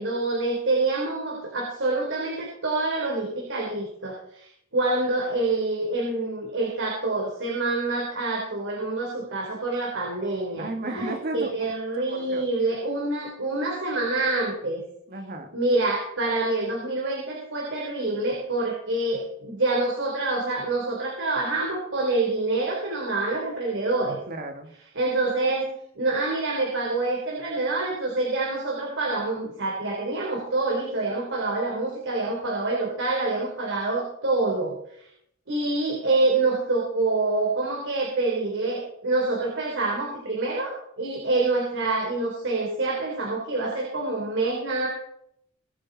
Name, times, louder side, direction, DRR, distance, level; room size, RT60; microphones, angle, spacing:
voice 1, 0.0-4.5 4.7-14.8 15.5-24.2 25.0-35.1 35.5-44.9, right 2 dB, 60° right, -2 dB, 4.0 m, -26 dB
voice 2, 10.5-11.5 12.0-12.4 15.1-15.5 24.3-24.7, right 2 dB, 45° right, 4 dB, 2.2 m, -33 dB
22.5 x 9.0 x 4.3 m, 0.72 s
head